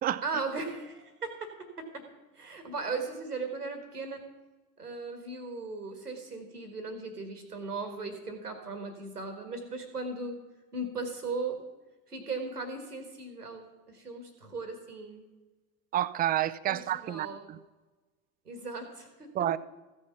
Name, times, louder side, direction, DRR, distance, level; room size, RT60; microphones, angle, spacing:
voice 1, 0.2-2.1 2.3-4.2 4.8-10.4 10.7-11.6 12.1-15.2 16.7-17.5 18.5-19.5, right 3 dB, 90° right, 7 dB, 1.6 m, -37 dB
voice 2, 15.9-17.6 19.3-19.6, right 12 dB, 20° right, 16 dB, 0.4 m, -29 dB
14.5 x 6.4 x 7.0 m, 1.2 s
figure-of-eight pair, 70°, 45 cm